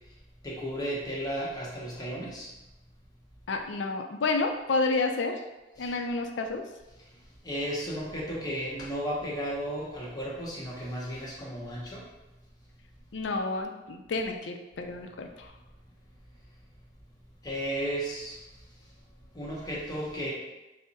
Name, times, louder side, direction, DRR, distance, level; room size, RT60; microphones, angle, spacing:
voice 1, 0.4-2.5 5.8-5.9 7.4-12.1 17.4-18.4 19.3-20.3, equal, 20° left, -5 dB, 0.8 m, -34 dB
voice 2, 3.5-5.4 5.8-6.6 13.1-15.5, left 3 dB, 80° left, 5 dB, 0.4 m, -30 dB
3.6 x 2.1 x 3.9 m, 1.0 s
head